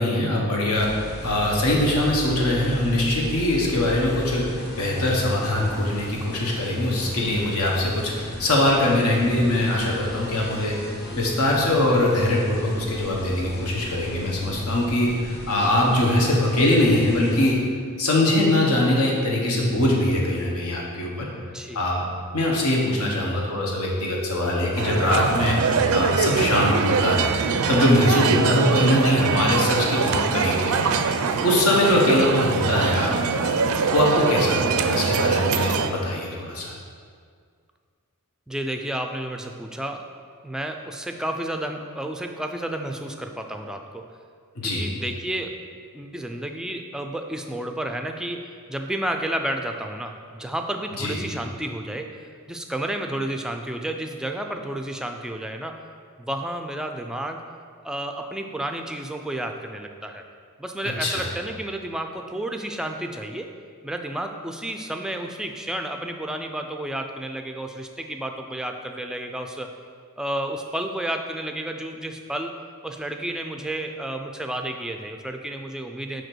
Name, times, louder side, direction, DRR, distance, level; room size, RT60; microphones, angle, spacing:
voice 1, 0.0-10.7 11.1-17.6 18.0-21.3 21.7-22.1 22.3-25.6 25.9-27.3 27.7-31.0 31.4-33.5 33.9-36.7 44.6-44.8 51.0-51.2 61.0-61.3, left 1 dB, 75° left, -2 dB, 1.3 m, -22 dB
sound 1, 0.7-17.5, left 1 dB, 45° left, 1.0 m, -35 dB
voice 2, 21.4-21.8 28.1-28.3 31.9-32.0 38.5-40.0 40.4-44.0 44.6-45.6 45.9-52.1 52.5-55.8 56.2-57.4 57.8-60.2 60.6-63.5 63.8-69.7 70.2-72.6 72.8-76.2, right 1 dB, 5° right, 4 dB, 0.3 m, -31 dB
sound 2, 24.8-35.9, right 5 dB, 70° right, 0.4 m, -23 dB
5.0 x 4.6 x 6.1 m, 2.1 s
head